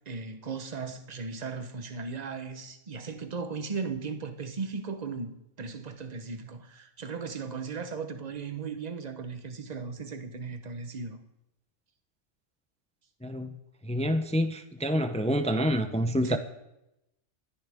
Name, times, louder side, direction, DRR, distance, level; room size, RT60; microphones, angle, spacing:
voice 1, 0.1-11.2 16.2-16.4, right 5 dB, 35° right, 1.0 m, -37 dB
voice 2, 13.2-13.6 13.8-16.4, equal, 10° left, 0.4 m, -27 dB
24.5 x 10.0 x 3.6 m
omnidirectional pair, 1.3 m